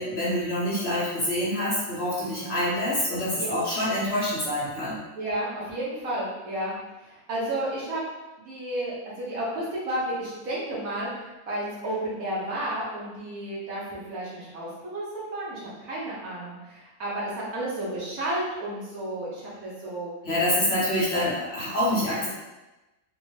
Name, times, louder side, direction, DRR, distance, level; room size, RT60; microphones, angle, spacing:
voice 1, 0.0-5.0 20.2-22.3, left 1 dB, 50° left, -8 dB, 1.0 m, -26 dB
voice 2, 2.2-2.6 3.3-3.5 5.2-6.7 7.0-8.0 8.4-11.1 11.5-15.0 15.3-20.1, right 1 dB, 70° right, -6 dB, 1.4 m, -32 dB
3.9 x 2.1 x 3.1 m, 1.1 s
omnidirectional pair, 1.6 m